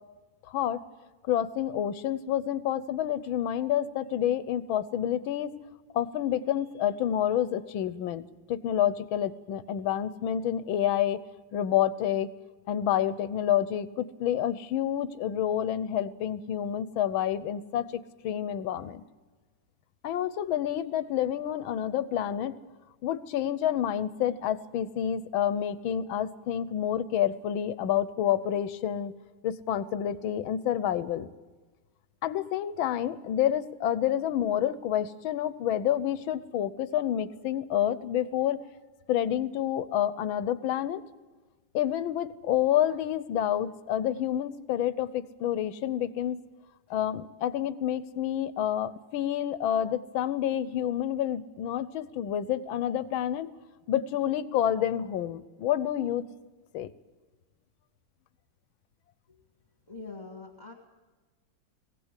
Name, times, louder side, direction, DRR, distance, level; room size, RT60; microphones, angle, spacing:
voice 1, 0.5-0.8 1.2-5.6 5.9-8.2 8.5-11.2 11.5-12.3 12.7-19.0 20.0-22.6 23.0-29.1 29.4-31.3 32.2-38.6 39.1-41.0 41.7-46.4 46.9-53.5 53.9-56.3 56.7-56.9, left 10 dB, 85° left, 16 dB, 1.6 m, -28 dB
voice 2, 59.9-60.7, left 3 dB, 25° left, 3 dB, 1.7 m, -43 dB
20.5 x 16.5 x 8.2 m, 1.3 s
omnidirectional pair, 2.1 m